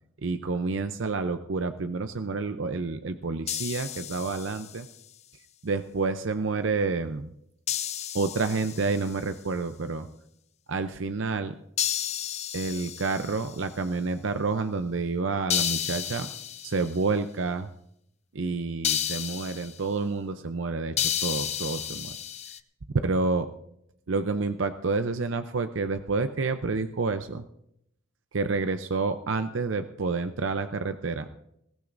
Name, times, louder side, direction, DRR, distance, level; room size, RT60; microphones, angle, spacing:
voice 1, 0.2-4.9 5.6-7.3 8.1-10.1 10.7-11.5 12.5-16.3 16.6-17.7 18.3-21.0 21.2-22.2 23.0-23.5 24.1-27.4 28.3-31.3, right 3 dB, 75° right, 9 dB, 0.7 m, -29 dB
sound 1, 3.5-4.9 7.7-9.2 11.8-13.7 15.5-17.0 18.8-19.8 21.0-22.6, left 10 dB, 35° left, 0.5 m, -32 dB
20.5 x 15.5 x 2.6 m, 0.74 s
head